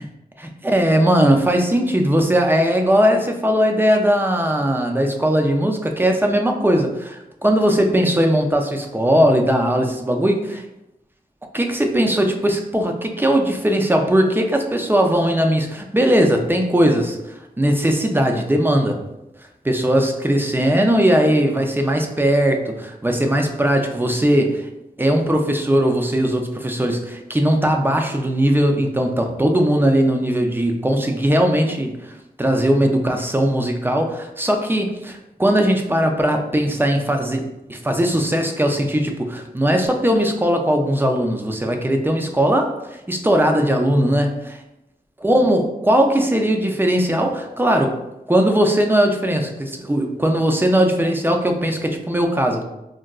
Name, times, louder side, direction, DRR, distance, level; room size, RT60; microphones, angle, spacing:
voice 1, 0.4-10.6 11.5-17.2 17.6-19.0 19.6-24.7 25.0-32.0 32.4-37.4 37.7-42.7 43.1-44.6 45.2-48.0 48.3-52.6, equal, 15° right, 3 dB, 0.4 m, -19 dB
3.6 x 2.2 x 2.3 m, 0.91 s
cardioid pair, 55°, 16 cm